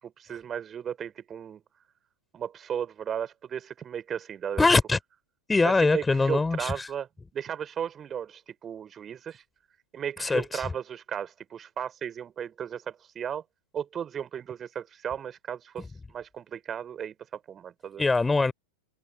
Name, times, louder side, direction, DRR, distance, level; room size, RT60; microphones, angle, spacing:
voice 1, 0.0-1.6 2.3-4.6 5.6-7.1 7.3-9.4 9.9-13.4 13.7-18.0, right 8 dB, 25° right, 4.3 m, -35 dB
voice 2, 4.6-5.0 5.5-6.9 10.2-10.7 18.0-18.5, left 3 dB, 10° left, 4.5 m, -23 dB
open air
figure-of-eight pair, 90°, 0 cm